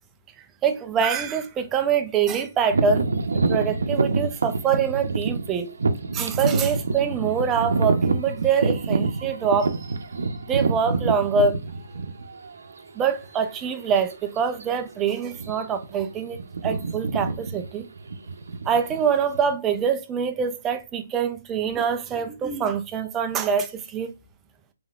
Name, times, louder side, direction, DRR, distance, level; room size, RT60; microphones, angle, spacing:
voice 1, 0.6-3.1 3.3-5.7 6.1-9.8 10.5-11.6 13.0-17.9 18.7-24.1, right 6 dB, 15° right, 0.5 m, -25 dB
sound 1, 2.7-12.5 13.1-13.2 13.9-14.1 14.4-14.6 15.3-15.8 16.1-19.5, right 3 dB, 80° right, 0.7 m, -26 dB
5.4 x 3.4 x 2.4 m
hypercardioid pair, 155°, 0 cm